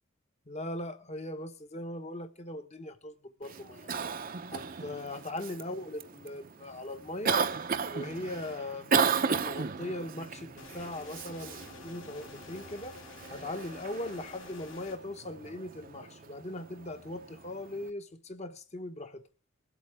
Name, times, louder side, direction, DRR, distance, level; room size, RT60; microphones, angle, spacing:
voice 1, 0.5-3.9 4.5-7.4 7.9-9.0 9.2-13.0 13.3-19.2, left 1 dB, 35° left, 1.0 m, -40 dB
Cough, 3.4-17.9, right 5 dB, 45° right, 0.7 m, -35 dB
sound 1, 10.6-15.0, left 4 dB, 75° left, 2.5 m, -50 dB
21.5 x 8.3 x 3.4 m
head